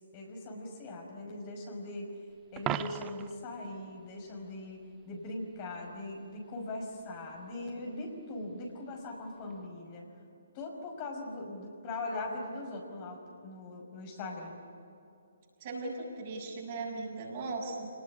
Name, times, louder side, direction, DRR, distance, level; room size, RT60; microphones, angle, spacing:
voice 1, 0.0-2.1 2.5-4.8 5.1-10.1 10.5-14.6, left 2 dB, 30° left, 1 dB, 5.6 m, -40 dB
Coin (dropping), 2.6-3.4 9.5-9.7, right 12 dB, 20° right, 0.7 m, -36 dB
voice 2, 15.6-17.9, right 3 dB, 40° right, 0 dB, 7.1 m, -38 dB
28.0 x 19.5 x 9.9 m, 2.6 s
figure-of-eight pair, 135°, 0 cm